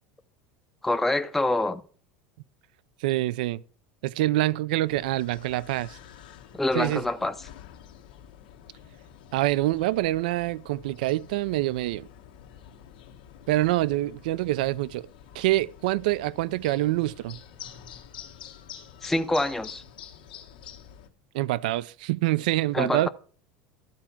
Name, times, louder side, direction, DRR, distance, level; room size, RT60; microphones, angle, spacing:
voice 1, 0.8-1.8 6.5-7.3 19.0-19.8 22.7-23.1, left 2 dB, 5° left, 0.5 m, -26 dB
voice 2, 3.0-3.6 4.0-6.0 6.7-7.0 9.3-12.1 13.5-15.1 15.3-17.4 21.3-23.1, right 16 dB, 80° right, 0.4 m, -26 dB
sound 1, 4.8-21.1, left 9 dB, 90° left, 1.6 m, -48 dB
12.0 x 4.4 x 7.2 m
supercardioid pair, 110°, 5 cm